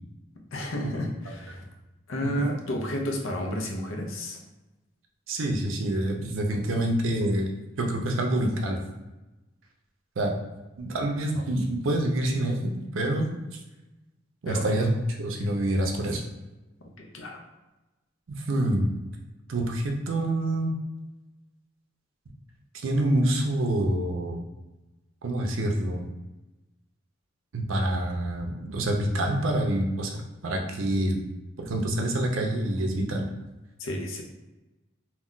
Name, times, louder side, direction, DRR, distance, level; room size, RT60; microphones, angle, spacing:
voice 1, 0.5-1.7 2.1-4.4 14.5-14.7 15.4-15.5 16.8-17.4 33.8-34.2, equal, 80° left, 2 dB, 0.5 m, -32 dB
voice 2, 5.3-7.5 7.8-8.8 10.2-10.4 10.8-13.3 14.4-14.9 15.2-16.2 18.5-18.9 19.5-20.7 22.8-24.4 25.2-26.0 27.5-31.2 31.6-33.3, right 1 dB, 80° right, 2 dB, 0.5 m, -26 dB
2.3 x 2.2 x 3.7 m, 1.1 s
head